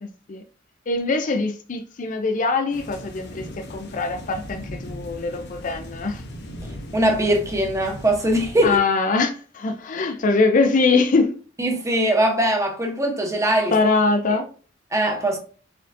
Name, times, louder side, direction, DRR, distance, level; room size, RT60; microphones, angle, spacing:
voice 1, 0.0-0.4 0.9-6.2 8.6-11.4 13.7-14.4, left 3 dB, 40° left, 0.4 m, -22 dB
sound 1, 2.7-8.8, equal, 60° left, 0.9 m, -38 dB
voice 2, 6.9-8.8 11.6-13.7 14.9-15.4, right 1 dB, 15° right, 0.9 m, -21 dB
4.2 x 3.8 x 2.5 m
head